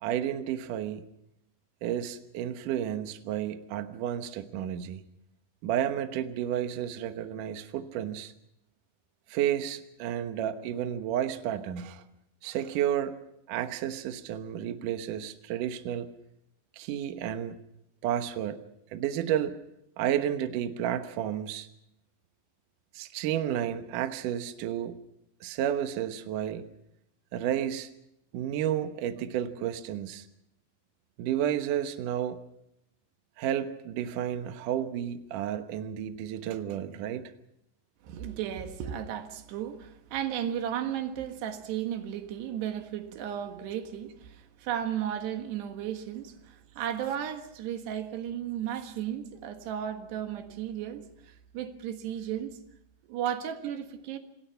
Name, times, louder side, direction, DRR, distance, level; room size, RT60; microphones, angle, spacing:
voice 1, 0.0-1.0 1.8-5.0 5.6-8.3 9.3-12.0 12.4-13.1 13.5-16.1 16.8-17.6 18.0-18.6 18.9-19.5 20.0-21.7 22.9-25.0 25.4-26.7 27.3-27.9 28.3-30.3 31.2-32.4 33.4-37.3, right 10 dB, 85° right, 8 dB, 1.8 m, -31 dB
voice 2, 38.0-52.6 53.1-54.2, right 10 dB, 65° right, 6 dB, 3.4 m, -34 dB
27.5 x 18.5 x 5.7 m, 0.78 s
omnidirectional pair, 5.6 m